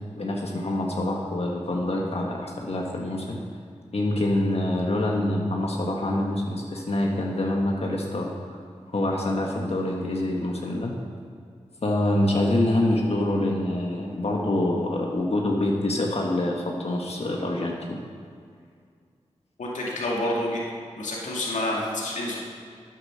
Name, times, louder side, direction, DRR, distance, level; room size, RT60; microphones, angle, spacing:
voice 1, 0.1-3.4 3.9-8.6 8.9-10.9 11.8-18.0, left 1 dB, 55° left, -1 dB, 1.6 m, -26 dB
voice 2, 19.6-20.6 21.0-22.4, left 1 dB, 85° left, -4 dB, 2.2 m, -28 dB
9.1 x 9.1 x 6.5 m, 2.2 s
cardioid pair, 40°, 12 cm